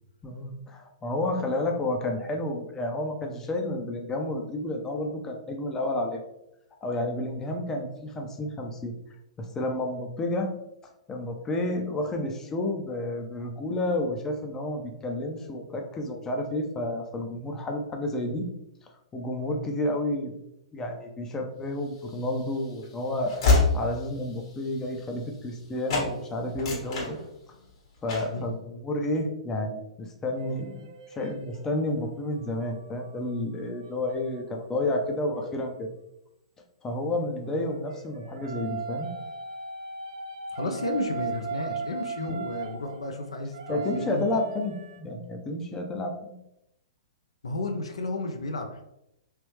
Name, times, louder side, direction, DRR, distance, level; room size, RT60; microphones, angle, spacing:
voice 1, 0.2-6.2 6.8-8.9 9.4-10.5 11.1-18.5 18.8-20.3 20.7-27.2 28.0-35.9 36.8-39.1 42.2-42.4 43.7-46.3, left 1 dB, 15° left, 3 dB, 0.5 m, -31 dB
Train / Slam, 22.0-25.6 25.9-26.1 26.5-27.7 28.1-28.4, left 3 dB, 55° left, 1.3 m, -27 dB
sound 1, 30.4-35.5 37.5-45.0, right 4 dB, 60° right, 0.5 m, -39 dB
voice 2, 40.5-44.4 47.4-48.8, left 2 dB, 75° left, 4 dB, 0.6 m, -32 dB
3.2 x 2.9 x 3.1 m, 0.83 s
figure-of-eight pair, 115°, 3 cm